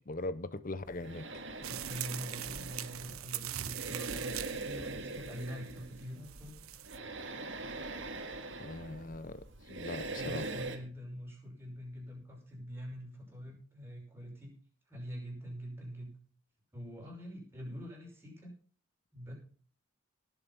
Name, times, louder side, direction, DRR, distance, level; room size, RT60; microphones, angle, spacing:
voice 1, 0.1-1.2 8.6-10.5, left 2 dB, 40° left, 0.7 m, -40 dB
sound 1, 0.9-10.8, right 2 dB, 60° right, 2.1 m, -42 dB
sound 2, 1.6-7.0, right 12 dB, 90° right, 0.9 m, -42 dB
voice 2, 1.7-6.5 10.1-14.5 14.9-16.1 16.7-18.5 19.1-19.3, equal, 10° right, 5.5 m, -44 dB
18.5 x 7.3 x 5.5 m
head